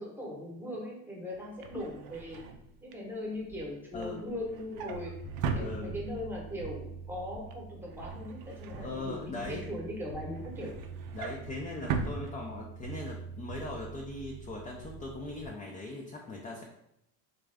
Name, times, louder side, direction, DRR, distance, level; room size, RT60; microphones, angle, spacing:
voice 1, 0.0-2.4 2.8-5.1 5.5-10.8, left 1 dB, 5° right, -3 dB, 0.9 m, -39 dB
Drawer open or close, 1.3-6.4 6.7-7.1 7.3-9.6 10.0-13.0 13.3-13.5 13.8-13.9, right 5 dB, 60° right, 0.5 m, -39 dB
voice 2, 3.9-4.3 5.5-5.9 8.8-9.6 11.1-16.6, left 2 dB, 20° left, -1 dB, 0.4 m, -40 dB
sound 1, 4.9-15.5, right 5 dB, 65° left, 0.8 m, -45 dB
3.5 x 2.4 x 3.3 m, 0.79 s
cardioid pair, 125°, 41 cm